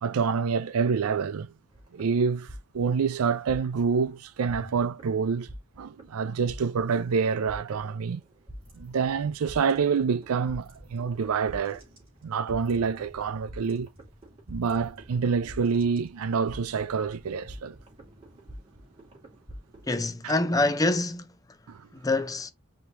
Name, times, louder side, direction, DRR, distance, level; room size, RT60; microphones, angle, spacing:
voice 1, 0.0-1.5 1.9-2.5 2.7-5.5 5.8-8.2 8.8-11.8 12.2-13.9 14.5-17.8 20.2-20.3 21.7-21.9, right 5 dB, 90° right, 0.4 m, -27 dB
sound 1, 1.7-4.1 4.5-20.1, equal, 25° right, 2.7 m, -46 dB
voice 2, 19.9-21.2 21.9-22.5, left 2 dB, 15° left, 0.5 m, -25 dB
5.0 x 2.9 x 2.9 m
head